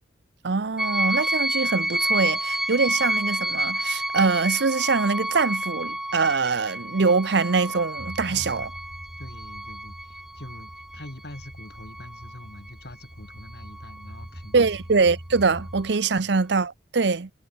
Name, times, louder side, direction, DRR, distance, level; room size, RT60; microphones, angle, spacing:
voice 1, 0.4-8.7 14.5-17.3, right 4 dB, 65° right, 0.7 m, -23 dB
sound 1, 0.8-12.7 13.3-14.1, right 1 dB, 5° right, 0.5 m, -29 dB
sound 2, 8.0-15.9, equal, 35° right, 2.6 m, -43 dB
voice 2, 8.3-8.7 9.2-14.7 16.2-16.4, left 1 dB, 60° left, 2.8 m, -44 dB
head